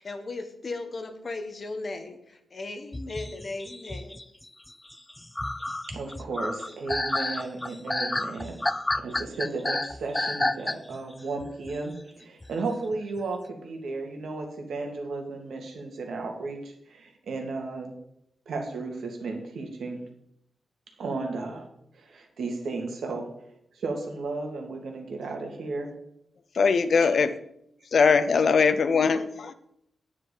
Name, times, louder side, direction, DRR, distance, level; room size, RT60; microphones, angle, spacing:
voice 1, 0.0-4.2, left 2 dB, 35° left, 6 dB, 1.3 m, -37 dB
sound 1, 2.9-11.1 11.4-11.8 12.4-12.5 12.9-13.2, left 2 dB, 15° left, 0.3 m, -31 dB
voice 2, 5.9-8.7 8.9-17.9 18.5-20.0 21.0-21.7 22.0-23.3 23.7-25.9 27.0-27.1, right 3 dB, 75° right, 2 dB, 2.3 m, -34 dB
voice 3, 26.6-27.3 27.9-29.5, left 5 dB, 50° left, 12 dB, 0.6 m, -21 dB
9.5 x 9.5 x 5.0 m, 0.76 s
wide cardioid pair, 165°, 0 cm